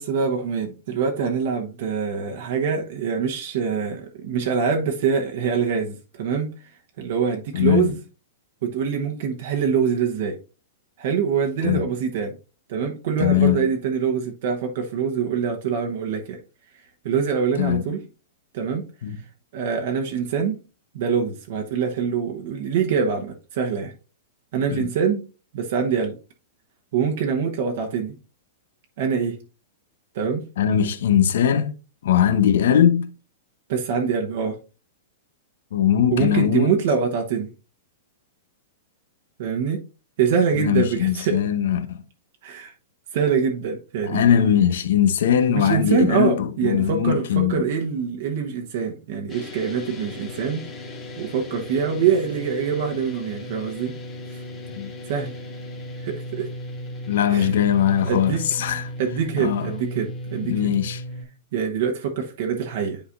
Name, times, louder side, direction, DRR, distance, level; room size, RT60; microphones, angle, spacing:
voice 1, 0.0-6.5 7.0-8.0 8.6-10.4 11.0-12.3 12.7-16.4 17.0-18.0 18.5-18.9 19.5-20.6 20.9-23.9 24.5-25.2 25.5-26.2 26.9-28.2 29.0-29.4 30.1-30.4 33.7-34.6 36.1-37.5 39.4-39.8 40.2-41.4 42.4-42.7 43.1-44.3 45.5-50.6 51.2-53.9 54.3-54.4 55.1-55.3 56.0-56.5 57.3-57.5 58.0-60.8 61.5-63.0, right 6 dB, 60° right, 1.0 m, -24 dB
voice 2, 7.5-7.9 11.6-11.9 13.2-13.6 17.6-17.8 19.0-19.2 24.7-24.9 30.6-31.7 32.0-33.1 35.7-36.7 40.5-42.0 44.0-47.7 54.8-54.9 57.1-58.9 59.4-59.7 60.4-61.0, left 9 dB, 75° left, 0.9 m, -20 dB
sound 1, 49.3-61.2, left 1 dB, 20° left, 1.8 m, -36 dB
9.9 x 4.0 x 2.5 m
hypercardioid pair, 130°, 0 cm